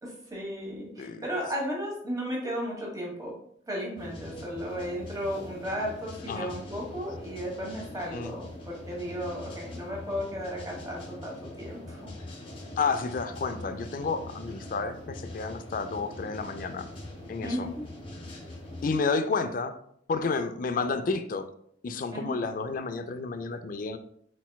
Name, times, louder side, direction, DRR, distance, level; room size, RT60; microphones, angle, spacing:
voice 1, 0.0-3.3 3.7-12.0 17.4-17.8 22.1-22.3, equal, 20° right, -2 dB, 1.3 m, -34 dB
sound 1, 4.0-19.0, left 1 dB, 30° left, 1.0 m, -43 dB
voice 2, 12.8-16.9 17.3-17.7 18.8-19.7 20.1-21.5 21.8-24.0, left 4 dB, 50° left, 9 dB, 0.4 m, -30 dB
4.2 x 4.1 x 2.3 m, 0.66 s
head